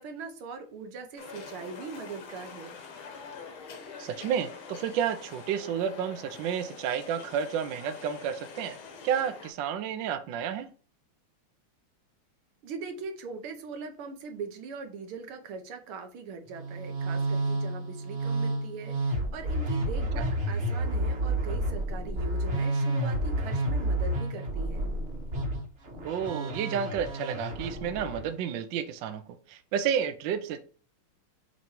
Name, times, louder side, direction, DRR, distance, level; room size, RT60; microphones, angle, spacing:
voice 1, 0.0-2.8 12.6-24.9, right 5 dB, 90° right, 6 dB, 1.9 m, -41 dB
sound 1, 1.2-9.5, left 5 dB, 80° left, 2.0 m, -45 dB
voice 2, 4.0-8.8 9.0-10.7 20.0-20.2 26.0-29.2 29.5-30.6, right 8 dB, 70° right, 9 dB, 1.3 m, -31 dB
Musical instrument, 16.5-28.3, right 1 dB, 35° right, 1.4 m, -30 dB
6.9 x 3.2 x 4.4 m, 0.38 s
omnidirectional pair, 2.3 m